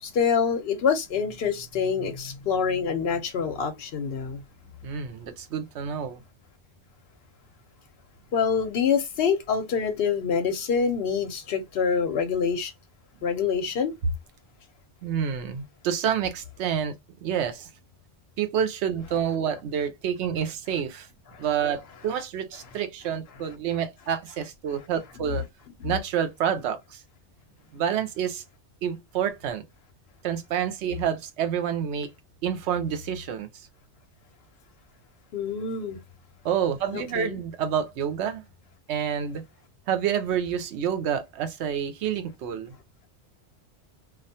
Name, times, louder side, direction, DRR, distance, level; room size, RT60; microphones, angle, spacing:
voice 1, 0.0-4.4 8.3-12.7 13.2-13.9 35.3-36.0 36.9-37.4, left 6 dB, 65° left, 0.8 m, -26 dB
voice 2, 4.8-6.2 15.0-16.9 17.2-17.7 18.4-21.1 21.4-25.4 25.8-27.0 27.7-28.4 28.8-29.6 30.2-32.1 32.4-33.7 36.4-38.4 38.9-39.4 39.9-42.7, right 8 dB, 85° right, 0.9 m, -28 dB
2.3 x 2.1 x 2.7 m
omnidirectional pair, 1.1 m